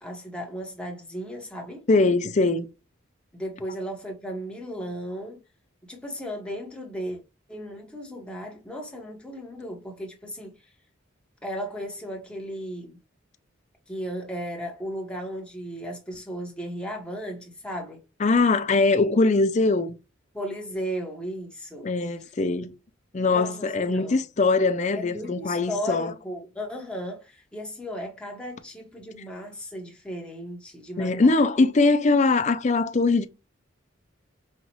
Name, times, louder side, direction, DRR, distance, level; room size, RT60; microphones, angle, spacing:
voice 1, 0.0-1.9 3.3-5.4 5.9-7.2 7.5-10.5 11.4-13.0 13.9-18.0 20.3-21.9 22.2-22.3 23.3-24.2 24.9-31.3, equal, 5° left, 1.2 m, -35 dB
voice 2, 1.9-2.7 18.2-20.0 21.8-22.7 23.1-26.1 31.0-33.3, left 3 dB, 35° left, 0.5 m, -22 dB
5.5 x 2.5 x 3.0 m
head